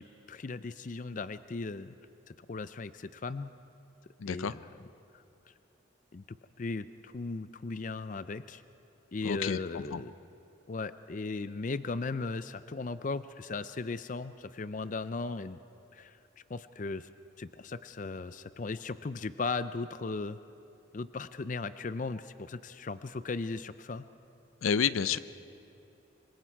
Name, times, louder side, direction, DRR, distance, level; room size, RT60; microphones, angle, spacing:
voice 1, 0.0-1.9 2.4-3.5 4.3-4.6 6.1-8.6 9.1-10.1 10.7-15.6 15.9-16.2 16.5-17.1 17.4-20.4 20.9-24.1 25.0-25.2, left 3 dB, 40° left, 14 dB, 0.4 m, -37 dB
voice 2, 4.2-4.5 9.2-10.0 24.6-25.2, left 6 dB, 90° left, 15 dB, 0.5 m, -30 dB
26.0 x 24.0 x 4.6 m, 2.8 s
head